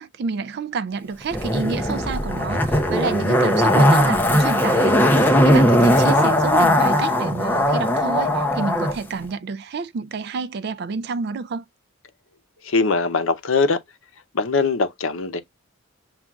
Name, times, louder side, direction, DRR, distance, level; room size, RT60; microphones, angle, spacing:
voice 1, 0.0-11.6, right 5 dB, 50° right, 0.3 m, -29 dB
Zipper (clothing), 1.3-8.9 9.2-9.3, equal, 10° left, 0.6 m, -18 dB
voice 2, 12.6-13.8 14.3-15.4, left 4 dB, 75° left, 0.7 m, -21 dB
7.1 x 2.4 x 2.3 m
head